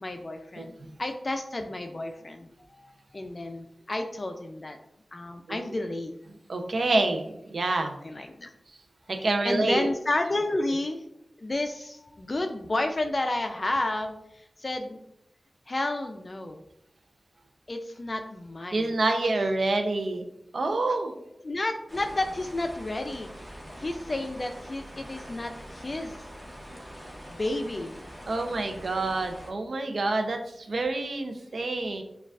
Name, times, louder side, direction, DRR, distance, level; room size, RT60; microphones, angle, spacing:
voice 1, 0.0-4.8 5.1-6.2 8.0-8.5 9.2-11.0 11.4-15.0 15.7-16.6 17.7-19.0 20.9-21.0 21.4-26.2 27.3-28.0, left 2 dB, 45° left, 5 dB, 0.3 m, -31 dB
voice 2, 5.5-5.8 6.5-8.0 9.1-9.9 18.7-20.2 20.5-21.2 28.3-32.0, right 2 dB, 70° right, 5 dB, 0.5 m, -27 dB
sound 1, 21.9-29.5, equal, 5° right, 1.0 m, -44 dB
6.4 x 2.3 x 2.3 m, 0.81 s
wide cardioid pair, 55°, 0 cm